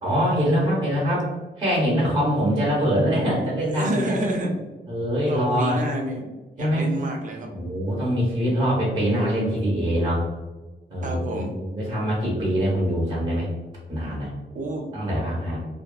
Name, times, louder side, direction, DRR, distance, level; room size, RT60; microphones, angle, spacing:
voice 1, 0.0-1.3 1.6-4.1 4.9-5.8 6.6-6.9 7.5-10.2 10.9-13.5 13.9-14.3 14.9-15.6, equal, 20° right, -6 dB, 0.8 m, -23 dB
voice 2, 3.7-4.5 5.3-7.5 11.0-11.5 14.5-14.9, right 1 dB, 45° right, 1 dB, 0.5 m, -29 dB
2.5 x 2.3 x 2.2 m, 1.2 s
wide cardioid pair, 155°, 19 cm